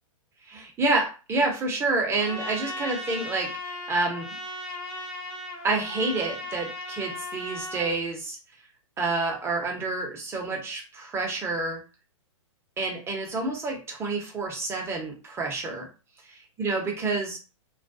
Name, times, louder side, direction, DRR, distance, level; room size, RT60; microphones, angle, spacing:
voice 1, 0.5-4.4 5.6-8.4 9.0-11.8 12.8-15.9 16.6-17.4, right 3 dB, 15° right, 1 dB, 0.7 m, -28 dB
Trumpet, 2.2-7.9, left 1 dB, 40° left, 0.9 m, -37 dB
2.3 x 2.2 x 2.6 m, 0.32 s
hypercardioid pair, 120°, 17 cm